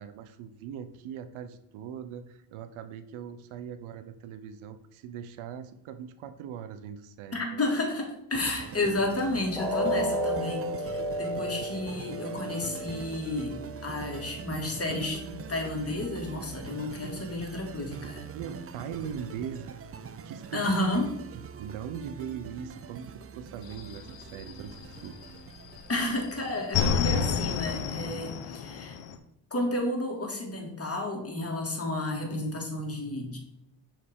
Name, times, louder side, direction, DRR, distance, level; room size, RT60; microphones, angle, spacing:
voice 1, 0.0-7.6 18.3-19.8 20.2-20.7 21.3-25.2, right 8 dB, 75° right, 11 dB, 0.7 m, -40 dB
voice 2, 7.3-13.5 13.8-18.3 20.5-21.1 25.9-29.0 29.5-33.4, left 2 dB, 30° left, 1 dB, 2.0 m, -31 dB
sound 1, 8.3-27.6, right 7 dB, 30° right, 0.4 m, -44 dB
sound 2, 9.6-15.5 15.9-16.1 16.6-16.7, equal, 5° left, 1.6 m, -33 dB
sound 3, 23.6-25.4 25.7-29.2, left 6 dB, 65° left, 0.8 m, -30 dB
6.4 x 4.5 x 3.6 m, 0.84 s
supercardioid pair, 60°, 49 cm